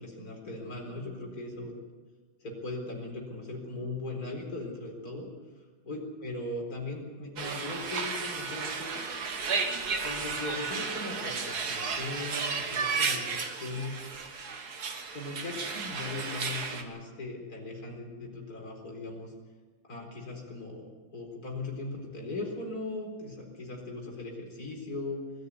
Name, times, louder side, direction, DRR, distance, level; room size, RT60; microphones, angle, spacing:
voice 1, 0.0-1.7 2.4-5.3 5.8-9.0 10.0-14.0 15.1-19.3 19.9-25.2, left 2 dB, 45° left, 0 dB, 4.7 m, -39 dB
sound 1, 7.4-16.8, right 5 dB, 55° right, 2.0 m, -33 dB
21.0 x 13.0 x 9.8 m, 1.4 s
omnidirectional pair, 2.2 m